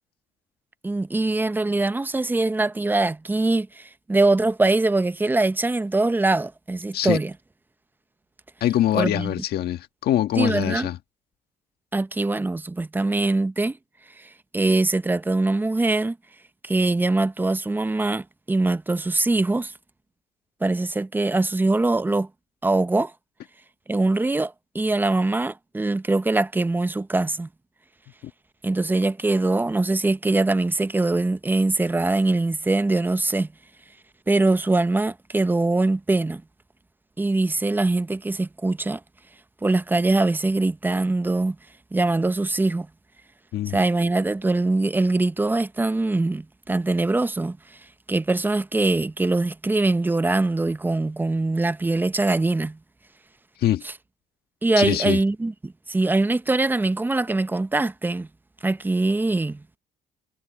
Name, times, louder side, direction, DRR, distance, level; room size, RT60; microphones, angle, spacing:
voice 1, 0.8-7.3 8.9-9.3 10.4-10.9 11.9-13.8 14.2-16.2 16.6-19.7 20.6-22.3 22.6-23.1 23.9-27.5 28.6-33.5 34.3-36.4 37.2-39.0 39.6-41.6 41.9-42.9 43.7-47.6 48.1-52.8 54.6-58.3 58.6-59.6, right 2 dB, 10° right, 0.7 m, -22 dB
voice 2, 8.6-11.0 28.2-28.3 43.5-43.8 53.6-53.8 54.7-55.2, left 12 dB, 65° left, 1.7 m, -23 dB
cardioid pair, 110°, 17 cm